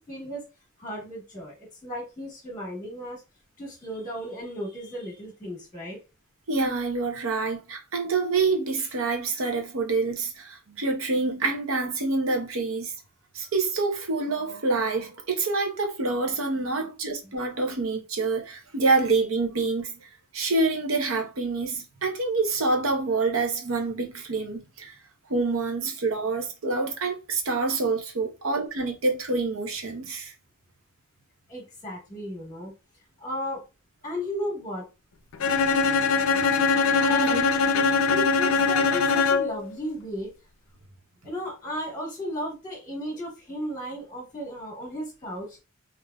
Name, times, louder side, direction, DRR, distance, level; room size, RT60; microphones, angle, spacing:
voice 1, 0.1-0.4 0.8-1.5 1.8-3.2 3.6-6.0 31.5-32.7 33.2-33.6 34.0-34.8 37.0-37.3 37.9-40.3 41.2-45.5, equal, 15° left, 1.1 m, -34 dB
voice 2, 6.5-12.9 13.3-19.9 20.3-24.9 25.3-30.3 37.2-37.5, right 3 dB, 90° right, 0.8 m, -27 dB
Bowed string instrument, 35.4-39.7, left 4 dB, 85° left, 0.4 m, -22 dB
3.3 x 2.6 x 2.3 m
head